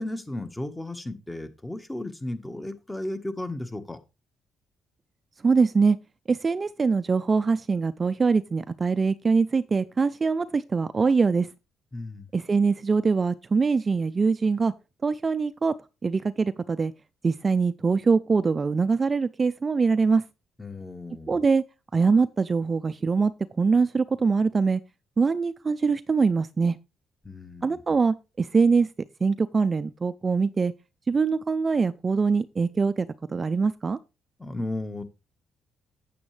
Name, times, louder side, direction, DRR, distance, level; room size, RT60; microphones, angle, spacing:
voice 1, 0.0-4.0 11.9-12.3 20.6-21.4 27.2-27.8 34.4-35.0, left 1 dB, 10° left, 1.4 m, -34 dB
voice 2, 5.4-6.0 6.3-11.5 12.3-14.7 15.0-15.7 16.0-16.9 17.2-20.2 21.3-21.6 21.9-23.3 23.6-24.8 25.2-26.8 27.6-28.9 29.2-30.7 31.1-34.0, right 4 dB, 30° right, 0.5 m, -23 dB
8.6 x 8.4 x 3.3 m
cardioid pair, 90°, 0 cm